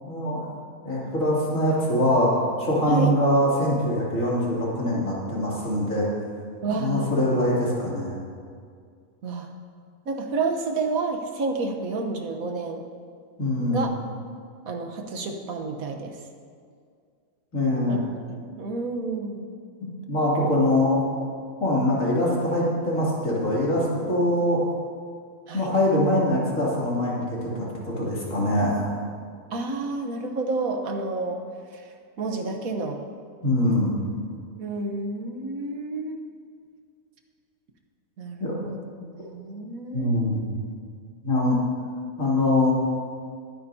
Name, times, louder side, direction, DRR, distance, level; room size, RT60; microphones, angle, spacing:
voice 1, 0.0-0.5 0.8-2.3 2.6-6.1 6.8-8.2 13.4-13.9 17.5-18.0 19.8-21.0 21.6-24.6 25.5-28.9 33.4-33.9 38.4-38.6 39.9-40.4 41.2-41.6 42.2-42.7, left 1 dB, 65° left, -6 dB, 3.3 m, -23 dB
voice 2, 6.6-7.3 9.2-9.5 10.1-12.8 13.7-13.9 14.6-16.2 17.9-18.0 18.3-19.5 25.5-25.8 29.5-31.4 31.7-31.9 32.2-33.0 34.6-36.2 38.2-40.2, right 3 dB, 80° right, 4 dB, 1.5 m, -30 dB
21.5 x 9.8 x 2.8 m, 2.2 s
omnidirectional pair, 1.5 m